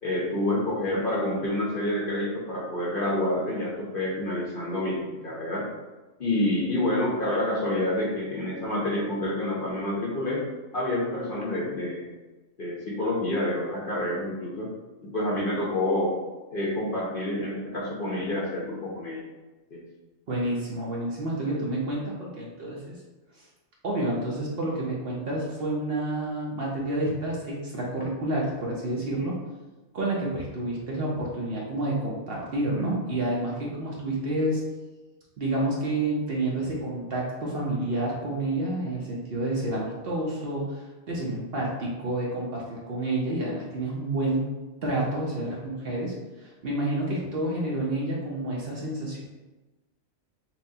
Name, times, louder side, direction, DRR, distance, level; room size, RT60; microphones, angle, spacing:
voice 1, 0.0-5.7 6.2-10.5 10.7-12.1 12.6-14.7 15.0-16.1 16.5-19.2 19.7-19.8, left 1 dB, 50° left, -4 dB, 0.8 m, -28 dB
voice 2, 20.3-23.0 23.4-23.5 23.8-29.4 29.9-34.6 35.4-44.5 44.8-49.2, right 1 dB, 55° right, -4 dB, 0.8 m, -29 dB
5.9 x 2.1 x 2.7 m, 1.2 s
omnidirectional pair, 1.4 m